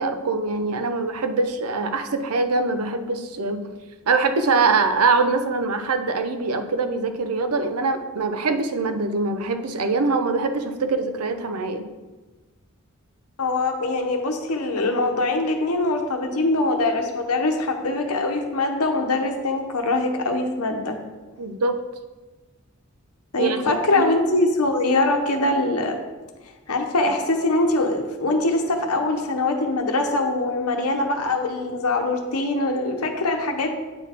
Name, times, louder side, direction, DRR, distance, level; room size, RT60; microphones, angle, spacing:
voice 1, 0.0-3.7 4.1-11.9 21.4-21.8 23.4-24.1, right 3 dB, 85° right, 8 dB, 0.6 m, -23 dB
voice 2, 13.4-21.0 23.3-26.0 26.7-33.7, left 2 dB, 85° left, 3 dB, 0.9 m, -23 dB
8.8 x 4.0 x 4.4 m, 1.2 s
head